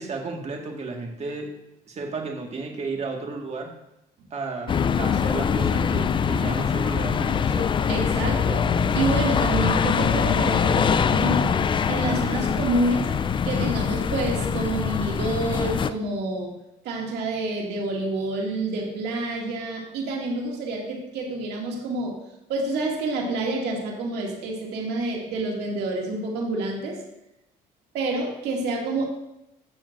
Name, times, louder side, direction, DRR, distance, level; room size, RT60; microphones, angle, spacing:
voice 1, 0.0-1.5 1.9-3.7 4.3-7.7, right 3 dB, 40° right, 2 dB, 1.7 m, -33 dB
sound 1, 4.7-15.9, left 6 dB, 30° left, 0.4 m, -23 dB
voice 2, 7.9-8.7 8.9-11.6 11.9-13.1 13.4-16.5 16.8-22.2 22.5-27.0 27.9-29.1, right 2 dB, 80° right, -1 dB, 2.3 m, -28 dB
13.5 x 7.3 x 2.6 m, 0.87 s
cardioid pair, 110°, 17 cm